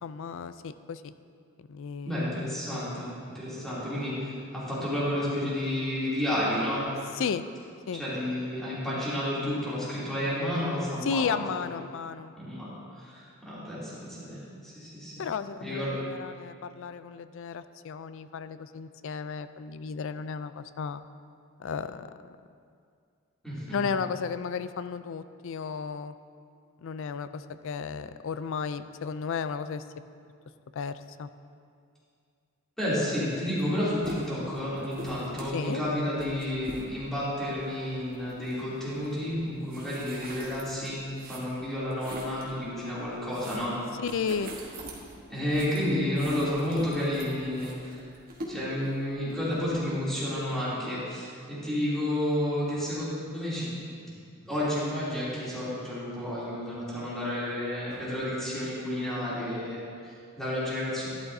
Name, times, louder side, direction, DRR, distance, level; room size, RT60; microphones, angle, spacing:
voice 1, 0.0-1.1 1.6-3.0 7.1-7.4 7.9-8.0 11.0-12.3 15.2-21.0 21.6-22.1 23.7-26.2 26.8-29.8 30.7-31.3 35.5-35.8 43.9-44.5, left 6 dB, 60° left, 13 dB, 0.4 m, -34 dB
voice 2, 2.0-6.8 7.9-11.4 12.4-12.7 12.9-15.3 15.6-16.0 23.4-23.8 32.8-43.8 45.3-48.0 48.5-53.1 53.3-53.7 54.4-61.1, left 1 dB, ahead, -10 dB, 2.8 m, -31 dB
sound 1, 33.6-33.7 34.0-42.5 42.9-49.8, right 1 dB, 45° right, 1.4 m, -44 dB
12.0 x 11.5 x 2.7 m, 2.3 s
head